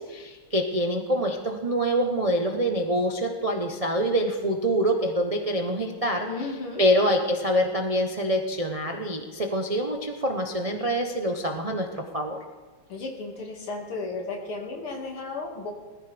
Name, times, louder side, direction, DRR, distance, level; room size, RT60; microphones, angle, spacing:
voice 1, 0.0-6.3 6.8-12.4, equal, 45° right, 2 dB, 0.4 m, -25 dB
voice 2, 6.2-6.8 12.9-15.7, left 3 dB, 90° left, 1 dB, 3.0 m, -34 dB
20.0 x 14.5 x 3.4 m, 1.4 s
omnidirectional pair, 2.3 m